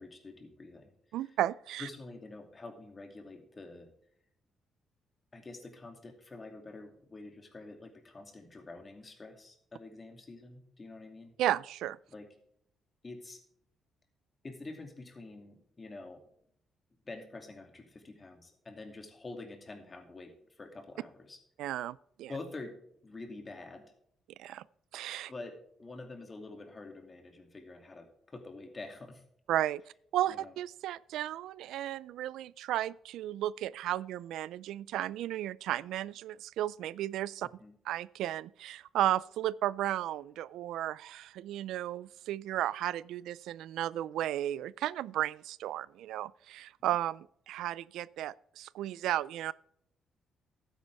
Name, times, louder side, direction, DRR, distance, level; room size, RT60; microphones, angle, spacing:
voice 1, 0.0-1.4 1.8-3.9 5.3-11.3 12.1-12.3 13.0-13.4 14.4-16.3 17.0-21.4 22.3-22.8 23.0-23.9 25.3-29.2 30.3-30.5 37.6-37.7, left 2 dB, 30° left, 2.5 m, -47 dB
voice 2, 1.1-1.9 11.4-12.0 21.6-22.3 24.4-24.6 24.9-25.3 29.5-29.8 30.1-37.5 37.9-49.5, right 13 dB, 85° right, 0.3 m, -34 dB
12.5 x 9.7 x 3.5 m
cardioid pair, 105°, 0 cm